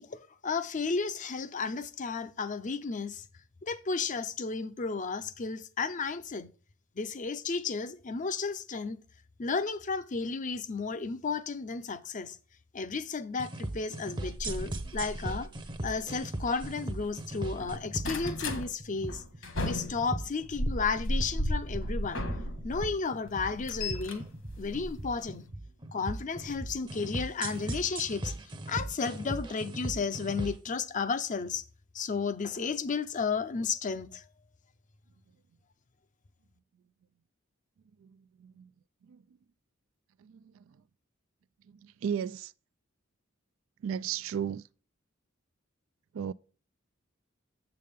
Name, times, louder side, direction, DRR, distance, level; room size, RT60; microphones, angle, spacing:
voice 1, 0.0-3.2 3.6-6.5 7.0-9.0 9.4-12.4 12.7-15.5 15.8-19.2 19.6-22.2 22.6-24.2 24.6-25.4 25.9-28.3 28.7-31.6 31.9-34.2, left 4 dB, 40° left, 0.6 m, -33 dB
sound 1, 13.4-30.7, right 1 dB, 25° right, 0.7 m, -38 dB
sound 2, 14.4-17.1 17.5-18.6 19.1-22.9 23.3-25.5 26.5-26.7 27.2-27.3 27.5-27.6, left 1 dB, 65° left, 1.5 m, -35 dB
voice 2, 38.0-38.7 39.0-39.2 40.2-40.8 41.6-42.5 43.8-44.7 46.1-46.3, right 8 dB, 70° right, 0.3 m, -36 dB
7.5 x 6.9 x 3.5 m
head